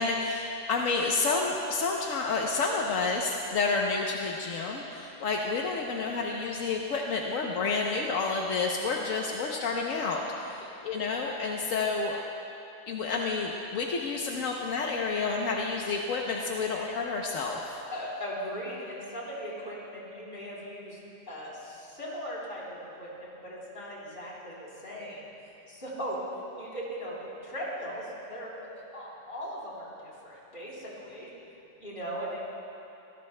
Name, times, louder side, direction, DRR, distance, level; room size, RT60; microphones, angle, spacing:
voice 1, 0.0-12.2 12.9-17.8, left 4 dB, 85° left, 0 dB, 1.3 m, -30 dB
voice 2, 17.9-21.0 21.3-25.2 25.7-26.2 26.6-31.3 31.8-32.4, equal, 45° left, -6 dB, 3.6 m, -39 dB
25.0 x 17.0 x 2.2 m, 2.9 s
omnidirectional pair, 1.3 m